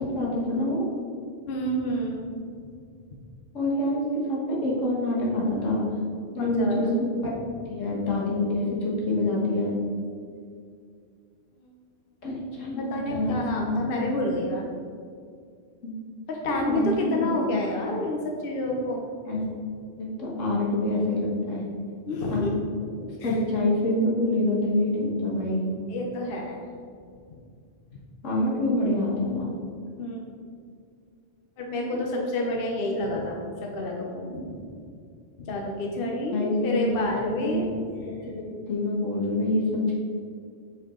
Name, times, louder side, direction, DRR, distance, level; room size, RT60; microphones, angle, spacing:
voice 1, 0.1-0.9 3.5-5.8 6.4-7.1 7.7-9.7 12.2-13.3 13.6-13.8 16.7-17.3 19.3-19.4 20.0-21.6 22.3-22.5 23.2-25.6 28.2-29.5 32.0-32.1 36.3-36.8 37.2-37.5 38.3-39.9, left 1 dB, 80° left, -5 dB, 1.9 m, -26 dB
voice 2, 1.5-2.3 6.4-7.0 12.8-14.7 16.3-19.1 22.1-22.6 23.2-23.4 25.9-26.6 30.0-30.3 31.6-34.6 35.4-37.7 38.0-38.1, left 1 dB, 50° left, 0 dB, 1.0 m, -29 dB
7.9 x 4.6 x 3.8 m, 2.2 s
omnidirectional pair, 1.3 m